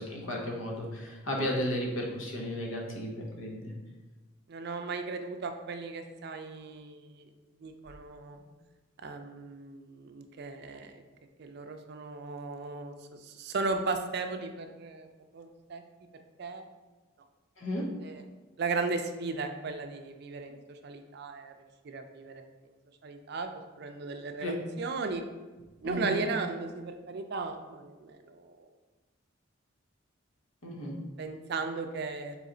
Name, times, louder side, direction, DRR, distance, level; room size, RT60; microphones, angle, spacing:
voice 1, 0.0-3.7 17.6-17.9 24.4-24.6 25.8-26.2 30.6-30.9, left 1 dB, 85° left, -1 dB, 1.0 m, -34 dB
voice 2, 4.5-7.3 7.6-8.4 9.0-11.0 11.4-15.1 15.3-15.8 16.4-16.6 17.8-18.2 18.6-21.5 21.8-22.5 23.0-23.5 23.8-25.2 25.8-28.7 31.2-32.3, right 3 dB, 55° right, 6 dB, 0.4 m, -36 dB
4.2 x 3.1 x 3.8 m, 1.2 s
head